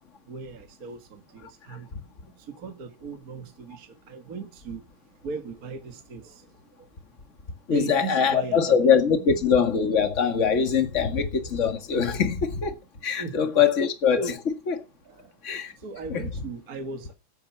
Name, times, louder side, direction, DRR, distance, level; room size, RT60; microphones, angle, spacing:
voice 1, 0.3-1.9 2.2-6.9 7.7-8.7 9.2-9.3 13.2-13.5 14.1-14.3 15.0-15.4 15.7-17.1, right 4 dB, 40° right, 1.3 m, -38 dB
voice 2, 7.7-12.7 13.0-14.7 15.4-15.7 16.1-16.5, left 6 dB, 30° left, 1.7 m, -23 dB
10.0 x 8.9 x 7.0 m
omnidirectional pair, 3.5 m